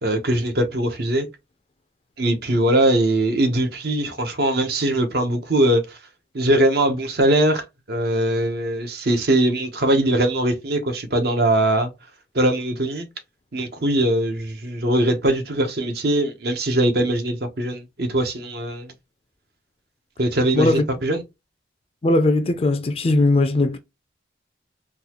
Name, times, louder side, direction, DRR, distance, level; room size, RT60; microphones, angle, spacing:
voice 1, 0.0-1.3 2.2-6.0 6.3-11.9 12.3-13.1 13.5-18.9 20.2-21.2, right 1 dB, 55° right, 0.8 m, -21 dB
voice 2, 22.0-23.8, left 2 dB, 30° left, 0.4 m, -19 dB
3.8 x 2.3 x 2.9 m
head